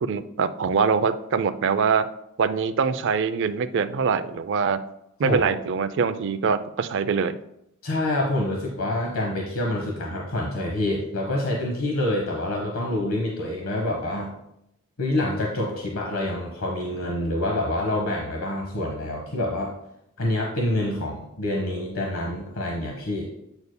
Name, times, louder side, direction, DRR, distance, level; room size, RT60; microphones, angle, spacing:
voice 1, 0.0-2.0 2.4-4.8 5.2-7.3, right 5 dB, 60° right, 11 dB, 0.4 m, -23 dB
voice 2, 7.8-14.3 15.0-19.7 20.2-23.3, left 1 dB, 90° left, 0 dB, 1.0 m, -27 dB
7.9 x 6.9 x 2.2 m, 0.80 s
head